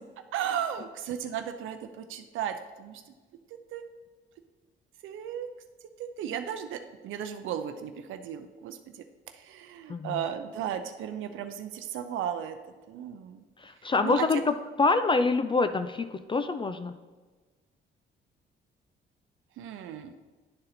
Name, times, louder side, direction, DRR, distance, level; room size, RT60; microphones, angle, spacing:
voice 1, 0.3-3.0 3.7-3.8 5.0-5.5 6.0-8.8 9.3-12.6 12.9-13.4 14.0-14.4 19.6-20.1, right 9 dB, 80° right, 8 dB, 0.5 m, -35 dB
voice 2, 9.9-10.2 13.6-17.0, left 3 dB, 25° left, 10 dB, 0.4 m, -26 dB
10.5 x 3.9 x 4.1 m, 1.3 s
cardioid pair, 90°, 20 cm